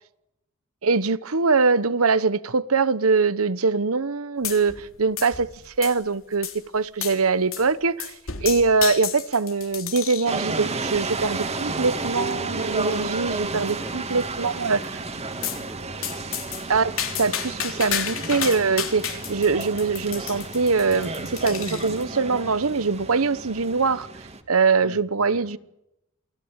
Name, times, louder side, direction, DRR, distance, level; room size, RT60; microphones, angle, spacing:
voice 1, 0.8-8.1 8.4-15.0 16.7-24.1 24.5-25.6, right 4 dB, 75° right, 1.1 m, -23 dB
sound 1, 4.4-4.9 5.2-6.1 6.4-6.6 7.0-7.2 7.5-7.7 8.0-10.3 10.9-11.3 11.9-12.0 12.4-12.5 12.8-12.9 13.3-13.8 15.4-15.6 16.0-22.0, left 9 dB, 65° left, 3.6 m, -32 dB
sound 2, 10.3-24.4, right 3 dB, 30° right, 2.3 m, -32 dB
voice 2, 13.7-14.1 15.1-16.6 17.3-17.7 24.8-25.6, equal, ahead, 2.6 m, -45 dB
28.5 x 19.0 x 9.0 m
head